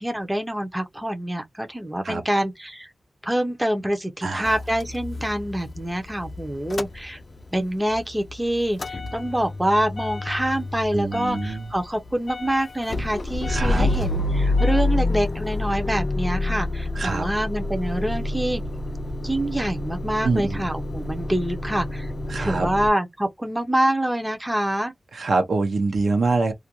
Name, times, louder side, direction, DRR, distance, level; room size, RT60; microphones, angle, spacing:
voice 1, 0.0-2.9 3.2-7.2 7.5-18.6 19.2-22.1 22.4-24.9, right 1 dB, 10° right, 0.5 m, -26 dB
voice 2, 4.2-4.5 10.9-11.7 13.5-13.9 16.9-17.2 20.2-20.6 22.3-22.7 25.1-26.5, right 3 dB, 70° right, 0.7 m, -24 dB
Motor vehicle (road) / Engine starting / Idling, 4.4-7.6 7.9-22.9, left 2 dB, 45° left, 0.3 m, -28 dB
2.4 x 2.2 x 2.8 m
wide cardioid pair, 100°, 0 cm